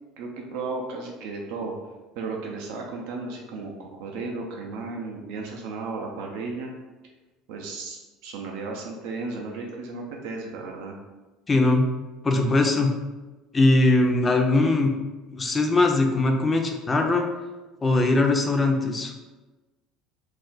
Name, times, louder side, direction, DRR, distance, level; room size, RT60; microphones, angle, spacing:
voice 1, 0.2-1.7 2.2-6.7 7.5-11.0, right 3 dB, 75° right, 0 dB, 0.4 m, -34 dB
voice 2, 11.5-11.9 12.2-12.9 13.5-14.9 15.3-17.3 17.8-19.1, left 2 dB, 25° left, 3 dB, 0.5 m, -21 dB
2.4 x 2.0 x 3.9 m, 1.2 s
hypercardioid pair, 80°, 0 cm